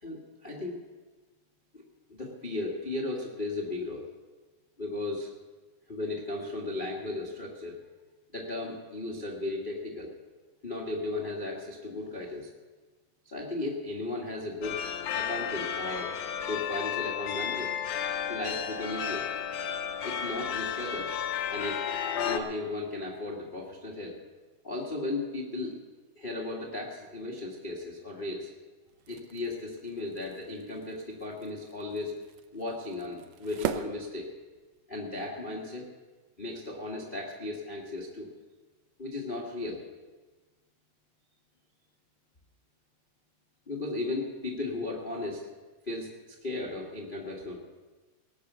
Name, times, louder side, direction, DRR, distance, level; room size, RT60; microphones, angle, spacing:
voice 1, 0.0-0.8 1.7-1.8 2.1-4.0 4.8-5.3 5.9-7.7 8.3-10.1 10.6-12.5 13.2-14.8 15.1-16.1 16.5-17.7 18.3-19.3 20.0-21.1 21.5-21.8 22.2-24.1 24.6-25.7 26.1-28.5 29.1-32.1 32.5-34.3 34.9-35.9 36.4-38.3 39.0-39.8 43.7-45.4 45.9-46.1 46.4-47.6, left 2 dB, 25° left, -3 dB, 1.1 m, -35 dB
sound 1, 14.6-22.4, left 8 dB, 70° left, 1.8 m, -33 dB
sound 2, 28.9-34.9, right 9 dB, 75° right, 1.7 m, -41 dB
19.0 x 6.8 x 8.0 m, 1.3 s
omnidirectional pair, 3.6 m